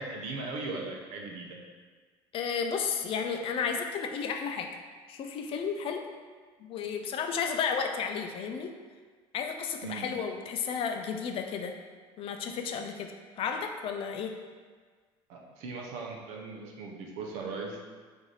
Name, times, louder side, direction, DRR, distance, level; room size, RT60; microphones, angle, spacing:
voice 1, 0.0-1.6 9.8-10.1 15.3-17.8, right 3 dB, 80° right, 0 dB, 0.6 m, -38 dB
voice 2, 2.3-4.7 5.1-6.1 6.7-8.7 9.3-11.7 12.2-13.1 13.4-14.3, left 6 dB, 50° left, 4 dB, 0.4 m, -32 dB
3.1 x 2.6 x 3.9 m, 1.5 s
supercardioid pair, 105°, 12 cm